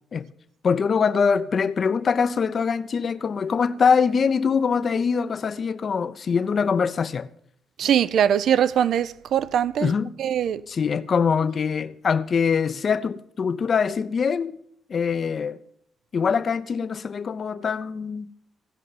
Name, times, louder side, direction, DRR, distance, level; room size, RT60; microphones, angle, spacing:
voice 1, 0.6-7.3 9.8-10.1 10.7-14.6 14.9-15.6 16.1-18.3, left 6 dB, 45° left, 0.6 m, -23 dB
voice 2, 7.8-9.9 10.2-10.6, right 9 dB, 70° right, 0.5 m, -21 dB
15.0 x 5.5 x 7.5 m
cardioid pair, 90°, 0 cm